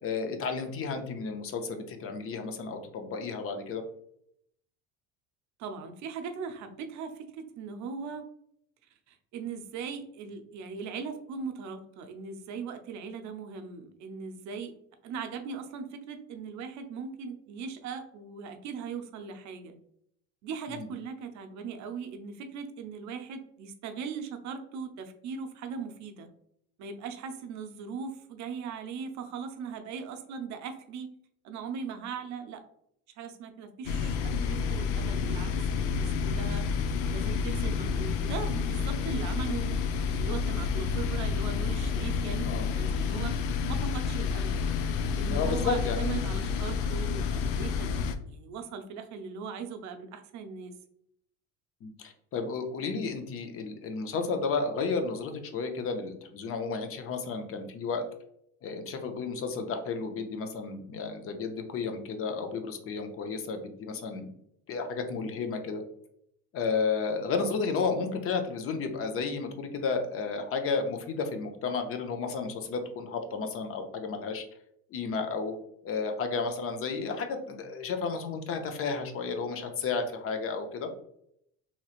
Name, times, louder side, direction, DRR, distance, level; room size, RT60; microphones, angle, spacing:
voice 1, 0.0-3.8 20.7-20.9 42.5-42.7 45.3-46.2 51.8-58.0 58.6-64.3 64.7-65.8 66.5-74.4 74.9-75.5 75.8-80.9, left 4 dB, 40° left, 6 dB, 0.6 m, -32 dB
voice 2, 5.6-8.2 9.1-14.7 15.0-19.8 20.4-26.3 26.8-31.1 31.4-32.6 33.2-35.5 35.9-36.7 37.1-39.7 40.2-43.3 43.7-44.6 45.2-50.7, right 5 dB, 55° right, 6 dB, 0.6 m, -39 dB
sound 1, 33.8-48.1, left 5 dB, 85° left, 0.5 m, -29 dB
3.0 x 2.9 x 2.4 m, 0.72 s
cardioid pair, 120°, 35 cm